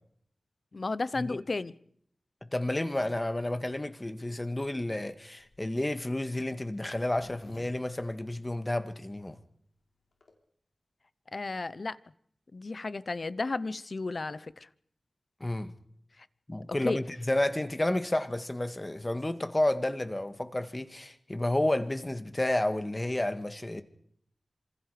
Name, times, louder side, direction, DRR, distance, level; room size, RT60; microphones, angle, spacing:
voice 1, 0.7-1.7 11.3-12.0 12.5-14.7 16.8-17.0, left 3 dB, 55° left, 0.8 m, -33 dB
voice 2, 2.4-9.4 15.4-15.7 16.5-23.8, left 1 dB, 20° left, 1.8 m, -31 dB
Zipper (clothing), 4.6-8.9 9.4-9.5 9.7-9.8 10.0-10.3, left 2 dB, 85° left, 4.5 m, -56 dB
26.5 x 26.0 x 5.1 m
wide cardioid pair, 80°, 0 cm